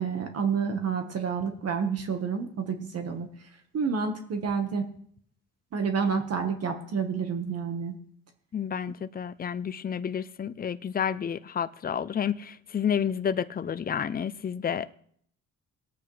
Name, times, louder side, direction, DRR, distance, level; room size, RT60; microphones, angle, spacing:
voice 1, 0.0-3.3 3.7-4.8 5.7-7.9, right 6 dB, 55° right, 1.5 m, -29 dB
voice 2, 8.5-14.9, left 8 dB, 30° left, 0.6 m, -30 dB
19.5 x 8.7 x 3.3 m
cardioid pair, 90°, 30 cm